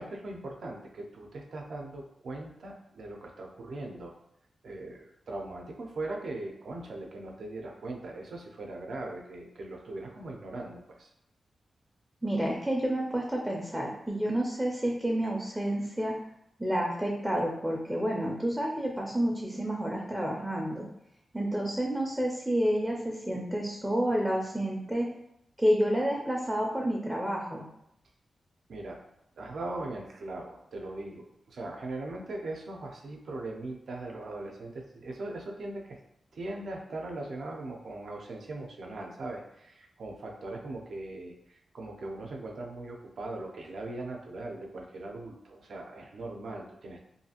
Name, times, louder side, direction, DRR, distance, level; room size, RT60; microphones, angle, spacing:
voice 1, 0.0-4.1 4.6-11.1 28.7-29.0 29.4-36.0 36.3-47.0, right 2 dB, 75° right, 1 dB, 0.5 m, -40 dB
voice 2, 12.2-16.1 16.6-20.9 21.3-25.1 25.6-27.7, equal, 5° right, -2 dB, 0.4 m, -29 dB
2.6 x 2.4 x 2.8 m, 0.79 s
wide cardioid pair, 110°, 0 cm